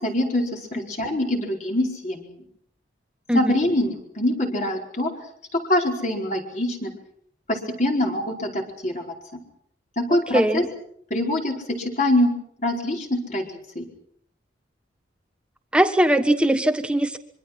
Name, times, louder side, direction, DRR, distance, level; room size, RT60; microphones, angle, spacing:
voice 1, 0.0-2.2 3.3-5.1 5.7-6.9 7.5-9.0 10.0-10.6 11.1-12.3 12.6-13.8, left 1 dB, 40° left, 1 dB, 4.8 m, -24 dB
voice 2, 10.1-10.7 15.7-17.2, right 1 dB, 5° right, 8 dB, 1.4 m, -20 dB
25.5 x 24.0 x 6.0 m, 0.65 s
head